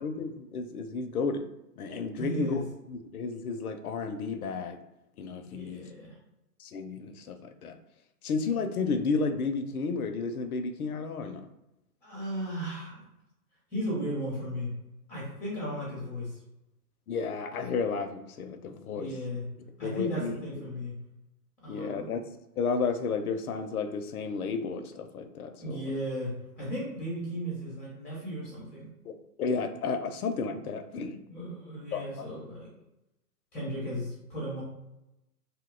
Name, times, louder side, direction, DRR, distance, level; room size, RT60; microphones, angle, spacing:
voice 1, 0.0-1.5 1.8-2.6 2.9-4.8 5.2-5.8 6.6-7.8 8.2-11.4 17.1-19.1 19.8-20.4 21.7-22.3 22.6-25.8 29.1-31.2 31.9-32.4, left 4 dB, 65° left, 8 dB, 0.5 m, -32 dB
voice 2, 2.2-2.6 5.4-6.2 12.0-13.1 13.7-14.7 15.1-16.4 18.9-19.4 19.8-20.9 21.6-22.1 25.6-28.9 31.3-32.7 33.5-34.6, equal, 5° left, -6 dB, 0.7 m, -35 dB
2.7 x 2.1 x 3.6 m, 0.90 s
hypercardioid pair, 135°, 48 cm